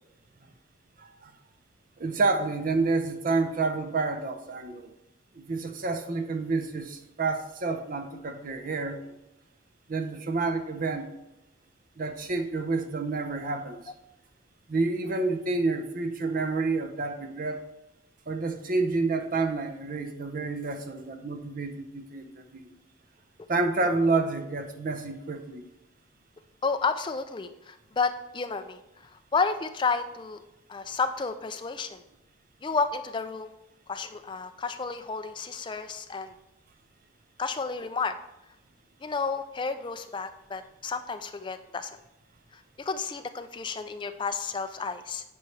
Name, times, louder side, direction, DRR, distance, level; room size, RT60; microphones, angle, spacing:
voice 1, 1.0-1.3 2.0-4.9 5.4-9.0 9.9-11.1 12.0-13.8 14.7-17.6 18.3-22.6 23.5-25.6, right 3 dB, 40° right, 7 dB, 0.5 m, -29 dB
voice 2, 26.6-30.4 30.7-32.0 32.6-33.5 33.9-36.3 37.4-38.2 39.0-41.9 42.8-45.2, left 4 dB, 25° left, 9 dB, 0.3 m, -31 dB
8.6 x 4.7 x 3.2 m, 0.92 s
head